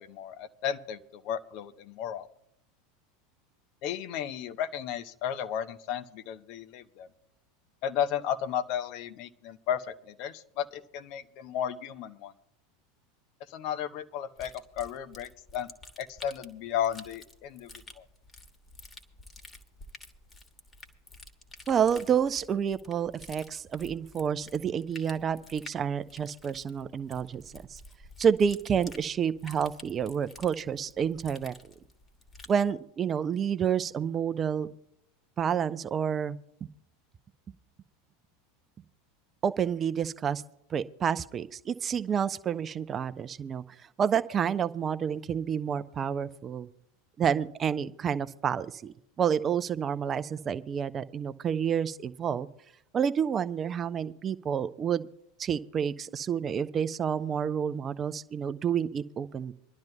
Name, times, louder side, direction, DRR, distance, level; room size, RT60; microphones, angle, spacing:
voice 1, 0.1-2.3 3.8-7.1 7.8-12.3 13.5-15.7 16.0-18.0, left 9 dB, 50° left, 11 dB, 0.8 m, -34 dB
sound 1, 14.4-32.6, left 2 dB, 20° left, 1.5 m, -50 dB
voice 2, 21.7-27.8 28.2-31.5 32.5-34.7 35.4-36.4 39.4-40.4 40.7-43.6 44.0-46.7 47.2-52.5 52.9-55.1 55.4-59.5, right 7 dB, 30° right, 13 dB, 0.6 m, -29 dB
26.0 x 11.5 x 2.2 m, 0.74 s
figure-of-eight pair, 80°, 0 cm